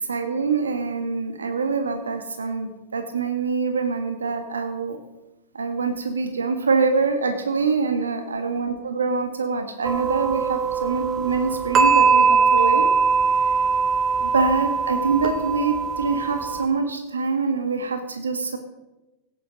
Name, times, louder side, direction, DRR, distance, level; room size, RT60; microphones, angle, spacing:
voice 1, 0.1-5.0 5.5-12.9 14.2-18.6, right 4 dB, 80° right, 7 dB, 1.5 m, -25 dB
sound 1, 9.8-16.6, right 5 dB, 35° right, 2.3 m, -21 dB
16.5 x 9.3 x 5.1 m, 1.0 s
figure-of-eight pair, 95°, 0 cm